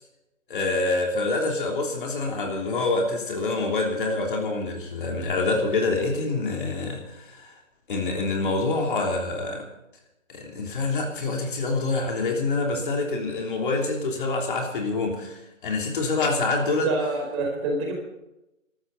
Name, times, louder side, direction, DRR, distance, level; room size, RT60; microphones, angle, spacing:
voice 1, 0.5-7.6 7.9-9.7 10.3-16.9, left 3 dB, 40° left, 1 dB, 3.3 m, -26 dB
voice 2, 16.6-17.9, right 2 dB, 20° right, 0 dB, 4.6 m, -27 dB
24.0 x 13.5 x 4.1 m, 0.92 s
figure-of-eight pair, 145°, 39 cm